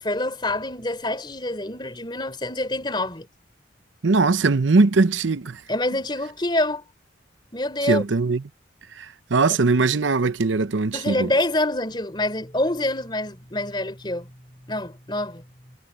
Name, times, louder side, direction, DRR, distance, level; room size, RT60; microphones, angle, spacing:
voice 1, 0.0-3.3 5.7-6.8 7.5-8.0 10.9-14.3 14.7-15.4, left 1 dB, 25° left, 3.5 m, -26 dB
voice 2, 4.0-5.6 7.8-8.4 8.9-11.3, right 3 dB, 85° right, 0.7 m, -20 dB
head